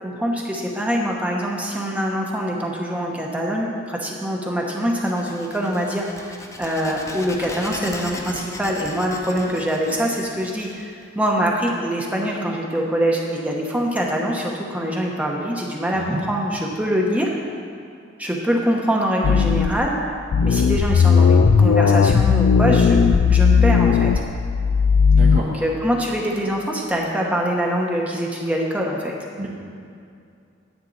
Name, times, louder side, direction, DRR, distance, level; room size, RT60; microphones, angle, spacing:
voice 1, 0.0-6.0 6.6-17.3 18.2-20.0 20.4-24.1 25.3-29.2, equal, 5° right, -2 dB, 0.9 m, -24 dB
sound 1, 5.0-11.5, left 2 dB, 15° left, 0.6 m, -38 dB
sound 2, 19.2-19.9 20.3-25.4, left 6 dB, 75° left, 0.3 m, -16 dB
voice 2, 25.1-25.5 29.4-29.5, right 1 dB, 40° right, -5 dB, 1.1 m, -29 dB
9.9 x 8.9 x 4.0 m, 2.4 s
head